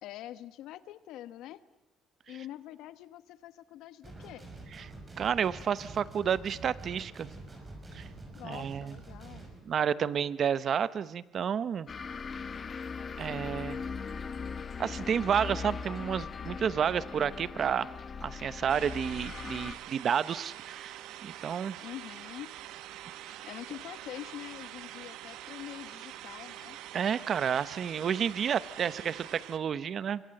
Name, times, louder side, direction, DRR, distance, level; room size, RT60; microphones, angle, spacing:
voice 1, 0.0-1.6 2.3-4.5 8.3-9.5 21.8-22.5 23.4-26.8, left 13 dB, 75° left, 14 dB, 1.1 m, -45 dB
sound 1, 4.0-9.6, right 2 dB, 20° right, 5.8 m, -47 dB
voice 2, 5.2-7.3 7.9-8.1 8.4-9.0 9.7-11.9 13.2-13.8 14.8-17.9 18.2-21.8 26.9-30.2, right 8 dB, 40° right, 16 dB, 0.9 m, -30 dB
sound 2, 11.9-19.7, left 5 dB, 30° left, 1.1 m, -39 dB
sound 3, 18.7-29.6, right 13 dB, 85° right, 1.2 m, -45 dB
26.0 x 23.5 x 7.8 m, 0.91 s
cardioid pair, 145°, 0 cm